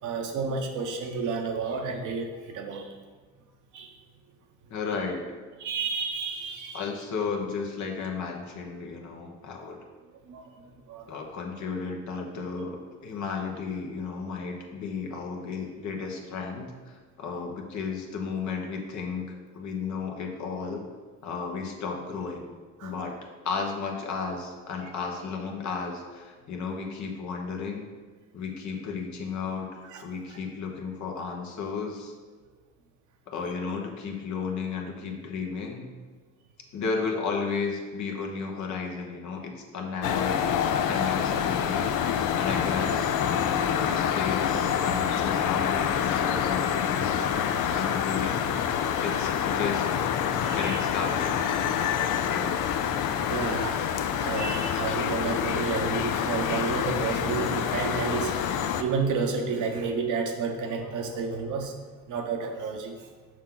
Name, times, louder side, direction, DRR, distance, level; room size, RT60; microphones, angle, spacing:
voice 1, 0.0-2.9 3.7-3.9 5.6-6.9 10.3-11.1 22.8-22.9 29.9-30.0 48.8-48.9 50.2-50.8 52.3-52.4 53.3-61.7 62.1-63.1, right 5 dB, 80° right, 3 dB, 1.0 m, -31 dB
voice 2, 4.7-5.2 6.7-9.8 11.1-20.9 21.2-22.5 22.8-23.2 23.4-27.9 28.3-32.1 33.3-35.9 36.7-40.4 40.9-41.9 42.4-47.3 47.7-48.4 49.0-49.9 50.5-51.4 52.2-52.5, left 5 dB, 70° left, 2 dB, 1.2 m, -33 dB
sound 1, 40.0-58.8, left 8 dB, 85° left, 0.5 m, -27 dB
6.4 x 6.0 x 3.8 m, 1.4 s
cardioid pair, 90°, 30 cm